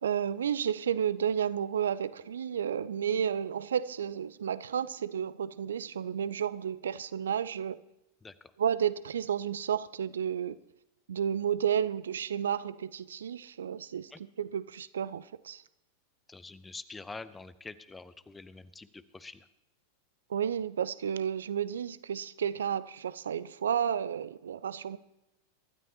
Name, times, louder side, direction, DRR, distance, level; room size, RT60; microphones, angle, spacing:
voice 1, 0.0-7.8 8.6-10.6 11.1-15.6 20.3-25.0, right 8 dB, 65° right, 0.4 m, -32 dB
voice 2, 8.2-8.5 14.1-14.2 16.3-19.5, left 3 dB, 10° left, 0.7 m, -46 dB
23.5 x 12.5 x 2.9 m
figure-of-eight pair, 90°, 0 cm